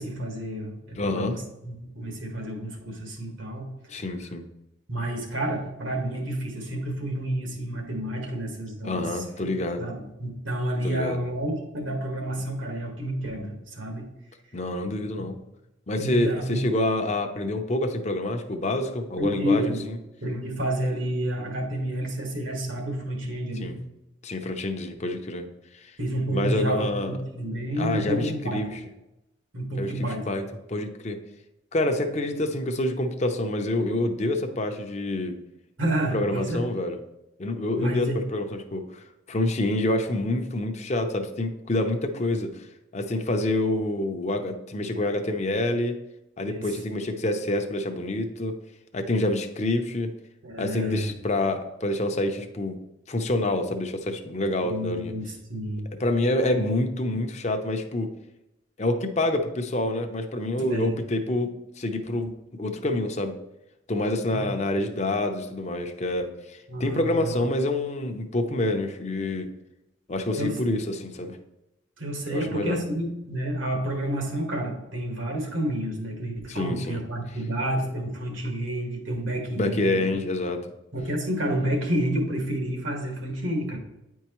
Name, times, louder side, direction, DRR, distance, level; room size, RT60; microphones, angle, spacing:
voice 1, 0.0-4.0 4.9-9.2 9.8-14.1 15.2-15.3 16.0-16.6 19.2-19.9 20.2-23.7 26.0-28.7 29.5-30.3 35.8-36.7 37.8-38.3 46.4-46.7 50.4-51.1 54.6-55.9 60.6-61.1 64.3-64.5 66.7-67.3 70.4-70.8 72.0-80.1 80.9-83.8, right 1 dB, 85° right, 1 dB, 1.6 m, -30 dB
voice 2, 1.0-1.4 3.9-4.4 8.8-9.8 10.8-11.2 14.5-15.4 15.9-19.7 23.6-23.8 24.2-25.5 25.7-25.9 26.3-27.2 27.8-28.7 29.8-30.4 30.7-31.2 31.7-35.4 36.1-37.0 37.4-42.7 42.9-45.9 46.4-48.5 48.9-50.1 50.6-52.8 53.1-55.1 56.0-58.1 58.8-63.4 63.9-69.5 70.1-71.4 72.3-72.8 76.5-77.0 79.5-80.6, left 1 dB, 35° left, 5 dB, 0.6 m, -27 dB
9.2 x 4.6 x 3.0 m, 0.91 s
head